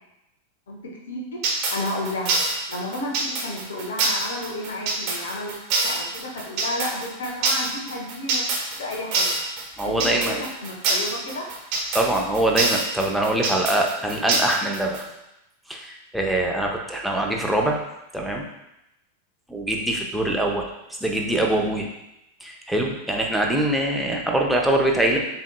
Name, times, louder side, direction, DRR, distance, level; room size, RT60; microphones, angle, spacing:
voice 1, 1.1-1.4 1.7-2.4 2.7-8.4 8.7-9.3 9.8-10.3 10.6-11.5, left 1 dB, 65° left, -1 dB, 0.9 m, -32 dB
sound 1, 1.4-15.0, right 3 dB, 40° right, 1.0 m, -25 dB
voice 2, 9.8-10.4 11.9-15.0 15.7-17.8 18.1-18.4 19.5-20.7 21.0-21.9 22.4-25.2, right 1 dB, ahead, -1 dB, 0.7 m, -23 dB
7.0 x 2.9 x 2.2 m, 0.89 s
figure-of-eight pair, 90°, 0 cm